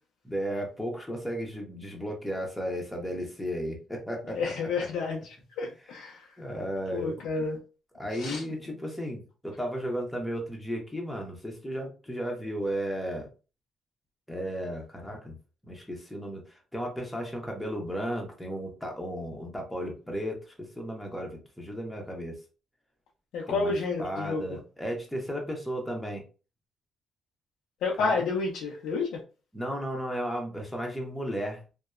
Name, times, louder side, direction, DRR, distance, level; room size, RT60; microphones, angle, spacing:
voice 1, 0.2-4.5 6.4-7.2 7.9-13.3 14.3-15.4 15.6-22.3 23.5-23.7 24.0-26.2 28.0-28.2 29.5-31.6, equal, 5° left, 0.9 m, -34 dB
voice 2, 4.3-6.3 6.9-7.6 8.1-8.4 23.3-24.6 27.8-29.2, left 4 dB, 85° left, 0.4 m, -30 dB
2.7 x 2.1 x 2.3 m
cardioid pair, 90°, 0 cm